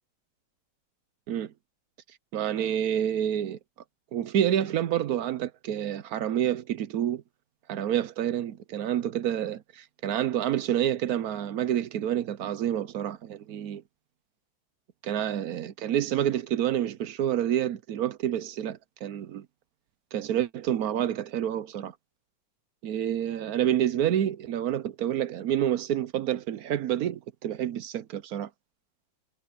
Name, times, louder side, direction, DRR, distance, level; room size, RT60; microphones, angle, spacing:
voice 1, 2.3-3.6 4.1-7.2 7.7-13.8 15.0-19.5 20.1-21.9 22.8-28.5, right 10 dB, 65° right, 0.9 m, -28 dB
omnidirectional pair, 2.2 m